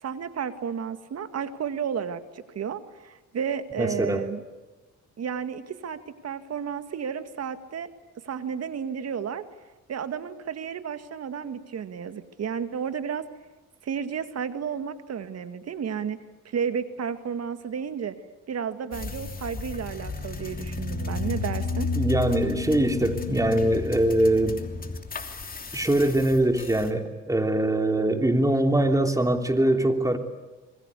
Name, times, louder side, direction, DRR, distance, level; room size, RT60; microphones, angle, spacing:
voice 1, 0.0-4.4 5.2-7.9 8.2-9.4 9.9-13.3 13.8-18.2 18.5-21.9, right 7 dB, 55° right, 10 dB, 2.1 m, -32 dB
voice 2, 3.8-4.3 22.0-24.6 25.7-30.2, right 1 dB, 10° right, 6 dB, 3.1 m, -23 dB
sound 1, 18.9-26.9, left 3 dB, 30° left, 3.0 m, -32 dB
27.0 x 22.5 x 8.4 m, 1.1 s
cardioid pair, 90°, 30 cm